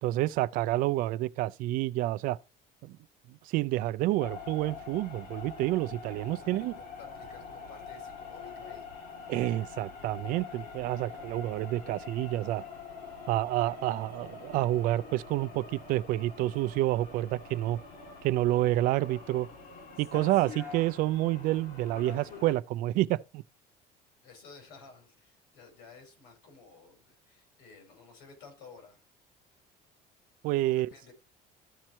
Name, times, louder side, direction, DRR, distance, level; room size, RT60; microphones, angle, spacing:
voice 1, 0.0-2.4 2.8-3.0 3.5-6.7 9.3-12.6 13.3-17.8 18.2-19.5 20.0-23.4 30.4-30.9, right 16 dB, 55° right, 0.4 m, -29 dB
sound 1, 4.2-22.5, left 5 dB, 60° left, 3.0 m, -45 dB
voice 2, 6.2-8.9 24.2-29.0 30.7-31.1, left 4 dB, 90° left, 4.7 m, -54 dB
13.5 x 4.5 x 4.3 m
cardioid pair, 175°, 17 cm